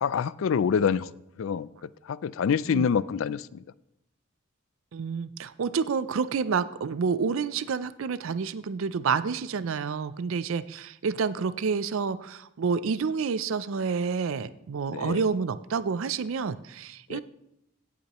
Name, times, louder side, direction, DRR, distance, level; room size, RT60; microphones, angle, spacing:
voice 1, 0.0-1.1 1.4-3.6 14.9-15.2 17.1-17.2, left 7 dB, 65° left, 19 dB, 0.3 m, -27 dB
voice 2, 4.9-17.2, right 5 dB, 65° right, 15 dB, 0.4 m, -29 dB
16.5 x 8.5 x 3.0 m, 0.85 s
head